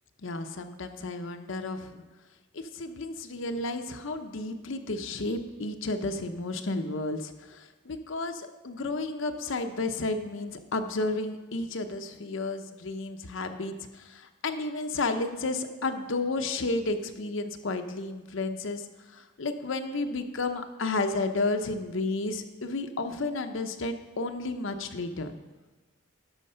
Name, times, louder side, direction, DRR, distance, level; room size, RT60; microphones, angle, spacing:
voice 1, 0.2-2.0 2.5-25.4, left 2 dB, 65° left, 6 dB, 0.7 m, -32 dB
12.0 x 5.9 x 5.6 m, 1.2 s
head